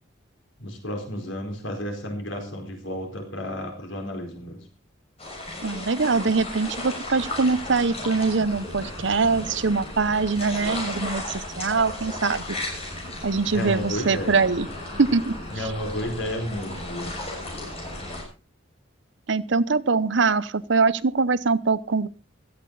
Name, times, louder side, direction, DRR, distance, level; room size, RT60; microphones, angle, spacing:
voice 1, 0.6-4.6 13.5-14.4 15.5-17.1, left 1 dB, 75° left, 3 dB, 4.5 m, -32 dB
sound 1, 5.2-18.2, left 1 dB, 30° left, 6.2 m, -35 dB
voice 2, 5.6-12.4 13.2-14.7 15.0-15.4 19.3-22.1, right 4 dB, 65° right, 17 dB, 0.7 m, -23 dB
17.0 x 13.5 x 4.0 m, 0.31 s
head